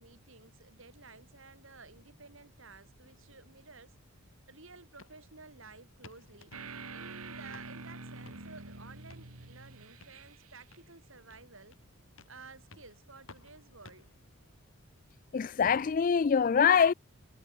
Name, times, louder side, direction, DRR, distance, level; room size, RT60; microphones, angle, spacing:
voice 1, 0.0-3.9 4.5-6.5 6.9-11.8 12.3-14.1, right 3 dB, 60° right, 5.6 m, -53 dB
sound 1, 3.0-14.6, left 3 dB, 65° left, 4.6 m, -60 dB
sound 2, 6.5-10.8, right 3 dB, 85° right, 2.9 m, -46 dB
voice 2, 15.3-16.9, left 7 dB, 40° left, 0.3 m, -24 dB
head